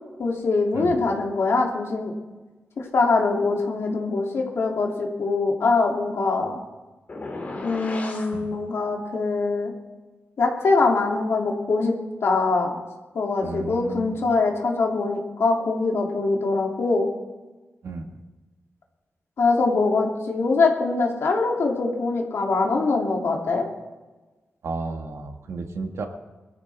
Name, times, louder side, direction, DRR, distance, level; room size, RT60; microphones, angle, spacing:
voice 1, 0.2-2.1 2.8-6.6 7.6-9.7 10.4-11.9 12.2-12.8 13.1-17.1 19.4-23.7, left 3 dB, 70° left, 0 dB, 2.7 m, -23 dB
sound 1, 7.1-8.4, left 2 dB, 35° left, 2.7 m, -34 dB
voice 2, 13.4-14.1 17.8-18.2 24.6-26.1, right 4 dB, 80° right, 4 dB, 1.6 m, -33 dB
22.5 x 14.0 x 3.5 m, 1.2 s
wide cardioid pair, 175°, 5 cm